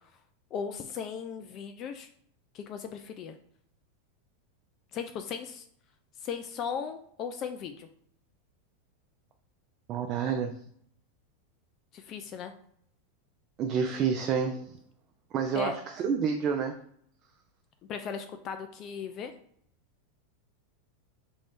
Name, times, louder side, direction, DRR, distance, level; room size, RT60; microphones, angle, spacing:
voice 1, 0.5-2.1 2.5-3.4 4.9-5.6 6.2-7.9 11.9-12.5 15.5-15.8 17.9-19.3, left 6 dB, 40° left, 7 dB, 0.3 m, -37 dB
voice 2, 9.9-10.5 13.6-14.8 15.3-16.8, right 6 dB, 40° right, 3 dB, 0.4 m, -29 dB
3.1 x 2.6 x 3.5 m, 0.66 s
hypercardioid pair, 120°, 0 cm